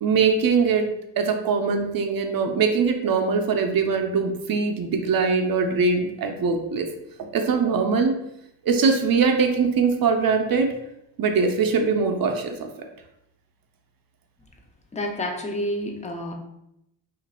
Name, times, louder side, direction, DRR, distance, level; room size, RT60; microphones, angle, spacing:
voice 1, 0.0-6.9 7.2-8.1 8.6-10.7 11.2-12.5, right 5 dB, 50° right, 5 dB, 0.5 m, -22 dB
voice 2, 14.9-16.3, left 1 dB, 20° left, 2 dB, 0.3 m, -29 dB
3.0 x 2.5 x 4.1 m, 0.82 s
wide cardioid pair, 175°, 45 cm